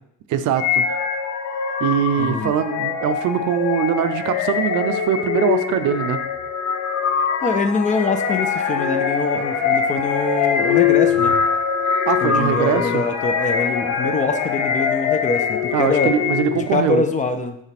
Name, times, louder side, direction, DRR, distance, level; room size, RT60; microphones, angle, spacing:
voice 1, 0.3-0.9 1.8-6.2 12.1-13.0 15.7-17.0, right 9 dB, 65° right, 9 dB, 0.6 m, -22 dB
sound 1, 0.6-16.8, left 7 dB, 55° left, 0.7 m, -22 dB
voice 2, 2.2-2.5 7.4-11.3 12.2-16.1 16.5-17.6, left 3 dB, 25° left, 8 dB, 0.4 m, -24 dB
7.2 x 3.3 x 5.9 m, 0.75 s
cardioid pair, 170°, 32 cm